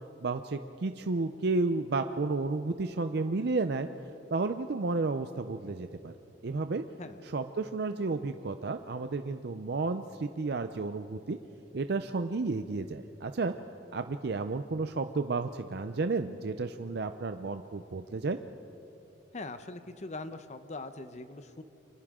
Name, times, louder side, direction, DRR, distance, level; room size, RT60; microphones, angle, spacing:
voice 1, 0.2-3.9 4.3-6.1 6.4-6.8 7.2-11.4 11.7-13.5 13.9-18.4, right 3 dB, 65° right, 9 dB, 0.6 m, -32 dB
voice 2, 19.3-21.6, left 2 dB, 40° left, 10 dB, 0.8 m, -41 dB
29.5 x 24.5 x 3.7 m, 2.9 s
head